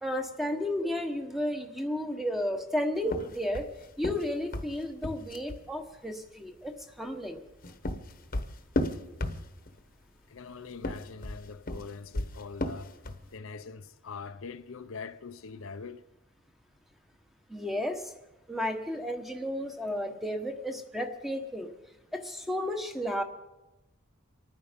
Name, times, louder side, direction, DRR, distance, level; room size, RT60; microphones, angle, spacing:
voice 1, 0.0-3.7 4.0-6.7 7.0-7.4 17.5-18.1 18.5-21.7 22.1-23.2, left 1 dB, ahead, 1.1 m, -33 dB
sound 1, 3.0-5.7 7.4-9.8 10.7-13.3, left 1 dB, 40° left, 1.1 m, -34 dB
voice 2, 10.3-13.0 13.3-16.0, left 5 dB, 65° left, 0.6 m, -43 dB
27.0 x 9.5 x 5.2 m
head